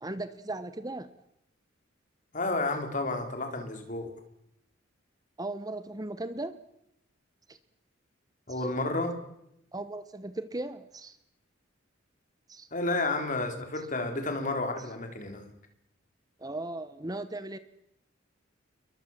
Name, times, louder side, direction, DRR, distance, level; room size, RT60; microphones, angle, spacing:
voice 1, 0.0-1.1 5.4-6.6 7.5-7.6 9.7-11.2 12.5-12.7 16.4-17.6, right 2 dB, 20° right, 12 dB, 1.1 m, -37 dB
voice 2, 2.3-4.1 8.5-9.2 12.7-15.4, left 2 dB, 40° left, 5 dB, 4.3 m, -31 dB
29.0 x 23.0 x 7.5 m, 0.82 s
head